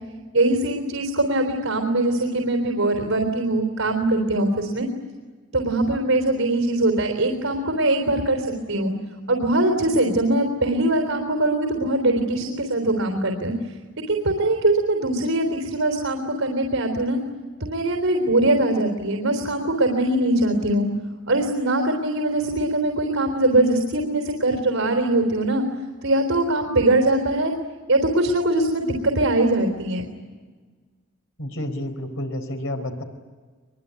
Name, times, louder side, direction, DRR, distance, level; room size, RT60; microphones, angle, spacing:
voice 1, 0.3-4.9 5.5-8.9 9.3-13.5 14.1-17.2 17.6-20.9 21.3-25.6 26.0-27.5 27.9-30.0, right 1 dB, 90° right, 3 dB, 3.6 m, -22 dB
voice 2, 31.4-33.0, left 1 dB, 75° left, 5 dB, 4.7 m, -30 dB
23.5 x 23.0 x 9.5 m, 1.4 s
head